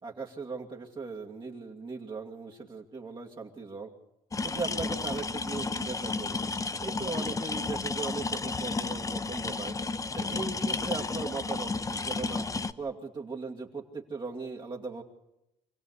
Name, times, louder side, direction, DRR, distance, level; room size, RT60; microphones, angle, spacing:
voice 1, 0.0-3.9 4.4-6.4 6.8-9.8 10.1-12.4 12.8-15.0, right 4 dB, 30° right, -2 dB, 2.6 m, -38 dB
sound 1, 4.3-12.7, left 3 dB, 20° left, 0.8 m, -32 dB
26.0 x 16.5 x 8.4 m, 0.87 s
cardioid pair, 110°, 17 cm